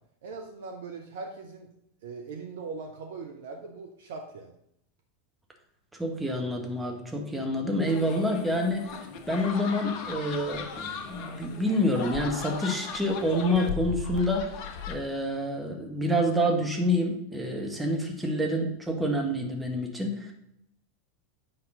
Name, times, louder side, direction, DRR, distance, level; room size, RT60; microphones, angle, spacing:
voice 1, 0.2-1.7 2.0-4.5, right 4 dB, 60° right, 4 dB, 0.8 m, -40 dB
voice 2, 6.0-14.5 14.9-20.3, equal, 5° right, 1 dB, 1.4 m, -28 dB
sound 1, 7.9-15.0, left 7 dB, 45° left, 0.8 m, -37 dB
8.8 x 5.8 x 3.8 m, 0.77 s
figure-of-eight pair, 85°, 0 cm